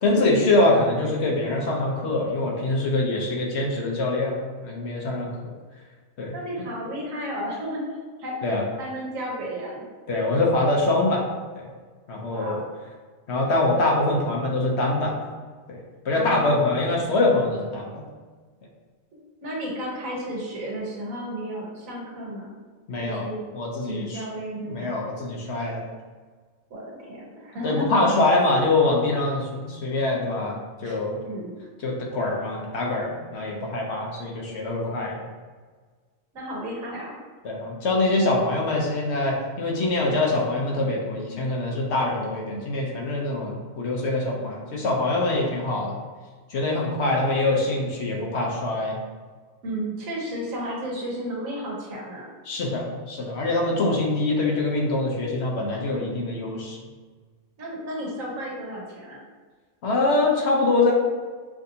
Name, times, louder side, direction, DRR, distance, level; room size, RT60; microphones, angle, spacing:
voice 1, 0.0-4.4 4.6-5.3 6.2-6.3 8.4-8.6 10.1-11.3 12.1-12.6 13.3-15.2 15.7-15.8 16.0-18.0 22.9-23.2 23.5-24.2 24.7-25.8 27.6-31.2 31.8-35.2 37.4-46.0 46.5-49.0 52.5-56.8 59.8-60.9, left 2 dB, 60° left, -2 dB, 1.0 m, -24 dB
voice 2, 6.3-7.9 8.2-8.4 8.8-9.8 12.3-12.7 16.1-16.8 19.4-22.5 23.0-23.4 23.8-25.0 26.7-27.9 30.8-31.0 31.2-31.5 36.3-37.1 47.0-47.1 49.6-52.3 57.6-59.2, equal, 80° right, -3 dB, 1.5 m, -33 dB
5.9 x 2.6 x 2.8 m, 1.5 s
omnidirectional pair, 1.4 m